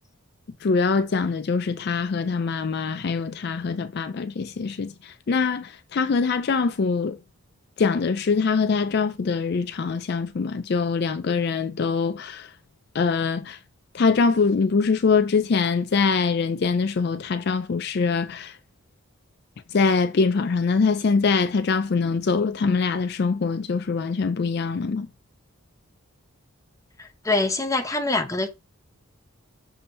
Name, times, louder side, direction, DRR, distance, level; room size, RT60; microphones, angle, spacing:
voice 1, 0.6-7.2 7.8-12.5 12.9-13.6 13.9-18.6 19.7-25.1, left 4 dB, 50° left, 0.4 m, -23 dB
voice 2, 27.0-28.5, left 2 dB, 15° left, 0.7 m, -24 dB
6.8 x 2.8 x 5.3 m
head